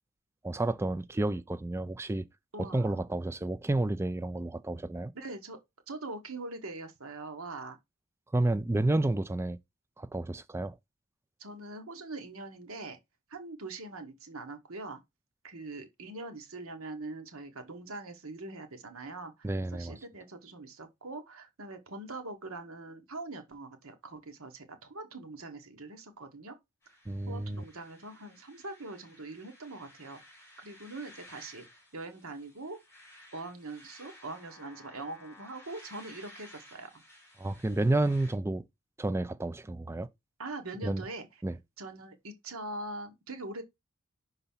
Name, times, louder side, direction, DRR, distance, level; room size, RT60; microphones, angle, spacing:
voice 1, 0.4-2.3 2.6-5.1 8.3-9.6 10.0-10.8 19.4-20.0 27.1-27.6 37.4-38.6 39.0-40.1 40.8-41.0 41.4-41.6, right 2 dB, 10° right, 0.3 m, -30 dB
voice 2, 2.5-3.0 5.1-5.6 5.9-7.8 11.4-13.0 13.3-15.0 15.4-26.6 27.3-30.2 30.6-31.6 31.9-32.8 33.3-37.0 40.4-41.3 41.8-43.6, right 2 dB, 80° right, 1.3 m, -42 dB
sound 1, 26.8-38.3, left 1 dB, 10° left, 2.5 m, -55 dB
5.6 x 3.9 x 5.5 m
head